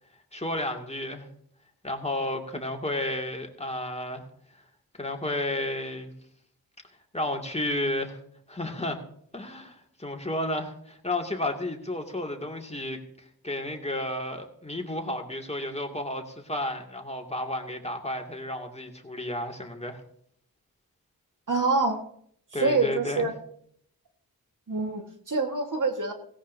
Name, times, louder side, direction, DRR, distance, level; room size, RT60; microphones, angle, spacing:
voice 1, 0.3-1.3 1.8-4.2 4.5-4.6 4.9-6.1 7.1-8.2 8.5-9.0 9.3-13.0 13.4-20.0 22.5-23.3, left 1 dB, 15° left, 2 dB, 2.4 m, -32 dB
voice 2, 21.5-22.0 22.6-23.3 24.7-26.1, right 3 dB, 55° right, 4 dB, 1.7 m, -26 dB
17.5 x 17.0 x 2.8 m, 0.67 s
cardioid pair, 50°, 36 cm